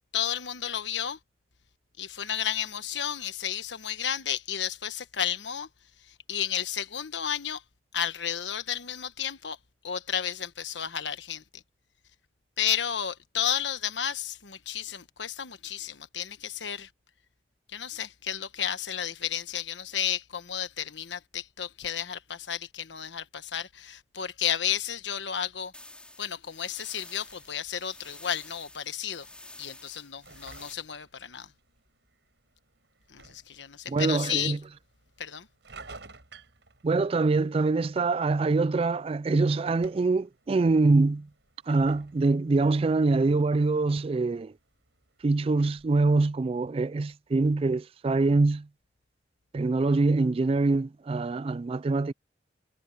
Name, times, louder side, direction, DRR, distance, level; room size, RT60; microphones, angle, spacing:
voice 1, 0.1-1.2 2.0-5.7 6.1-7.6 7.9-9.6 9.8-11.6 12.6-16.9 17.7-25.7 26.2-29.3 29.6-31.5 33.1-34.6 35.2-35.5, left 9 dB, 80° left, 1.3 m, -32 dB
sound 1, 25.7-30.7, left 2 dB, 5° left, 4.9 m, -50 dB
sound 2, 27.2-45.9, right 3 dB, 75° right, 5.5 m, -56 dB
voice 2, 33.9-34.6 36.8-41.3 41.7-44.5 45.2-48.7 49.5-52.1, right 3 dB, 30° right, 0.3 m, -24 dB
head